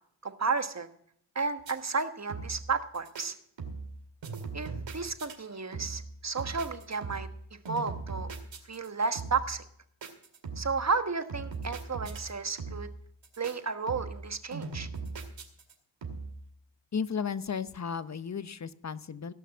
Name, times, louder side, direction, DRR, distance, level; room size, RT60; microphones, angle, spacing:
voice 1, 0.2-0.9 1.3-3.3 4.5-7.3 7.7-8.3 8.7-9.6 10.6-12.9 13.4-14.9, right 4 dB, 35° right, 9 dB, 1.4 m, -32 dB
sound 1, 1.6-2.0 2.3-2.7 2.9-3.3 3.6-4.0 4.2-5.3 5.7-6.1 6.4-7.4 7.6-8.9 9.1-9.5 10.0-10.8 11.3-12.3 12.6-13.0 13.2-13.5 13.9-14.3 14.5-15.7 16.0-16.4, right 4 dB, 70° right, 2.3 m, -39 dB
voice 2, 16.9-19.3, left 6 dB, 35° left, 15 dB, 0.8 m, -34 dB
17.0 x 5.9 x 7.3 m, 0.67 s
supercardioid pair, 45°, 47 cm